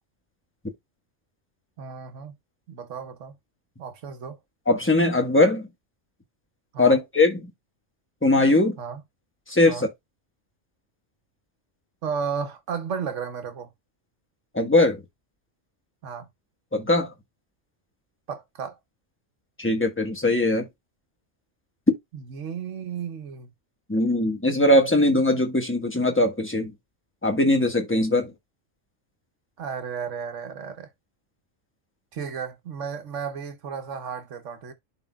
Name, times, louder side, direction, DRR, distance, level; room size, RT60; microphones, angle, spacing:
voice 1, 1.8-2.4 2.7-3.4 3.8-4.4 6.7-7.0 8.8-9.0 9.7-9.9 12.0-13.7 16.0-16.3 18.3-18.8 22.1-23.5 29.6-30.9 32.1-34.7, right 6 dB, 75° right, 1.4 m, -33 dB
voice 2, 4.7-5.7 6.8-7.4 8.2-8.8 9.5-9.9 14.5-15.0 16.7-17.1 19.6-20.7 23.9-26.7 27.2-28.3, left 2 dB, 10° left, 1.2 m, -20 dB
11.5 x 3.8 x 2.2 m
omnidirectional pair, 1.3 m